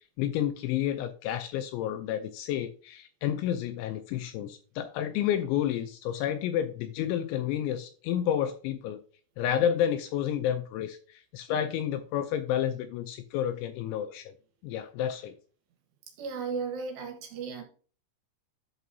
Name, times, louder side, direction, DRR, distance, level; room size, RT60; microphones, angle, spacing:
voice 1, 0.2-9.0 9.4-14.3 14.6-15.3, left 10 dB, 85° left, 2.7 m, -30 dB
voice 2, 16.2-17.6, right 5 dB, 70° right, 3.1 m, -35 dB
11.0 x 6.0 x 2.7 m
omnidirectional pair, 5.7 m